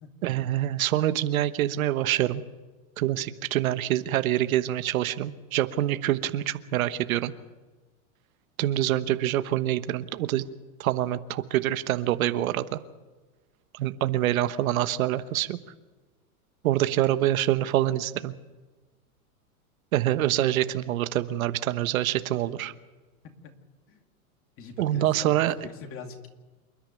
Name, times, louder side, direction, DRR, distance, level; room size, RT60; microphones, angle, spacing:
voice 1, 0.2-2.4 3.0-7.3 8.6-10.5 10.8-12.8 13.7-15.6 16.6-18.3 19.9-22.7 24.8-25.7, right 13 dB, 70° right, 11 dB, 1.2 m, -26 dB
voice 2, 24.6-26.3, left 5 dB, 30° left, 5 dB, 2.4 m, -43 dB
28.0 x 10.5 x 9.1 m, 1.2 s
supercardioid pair, 140°, 43 cm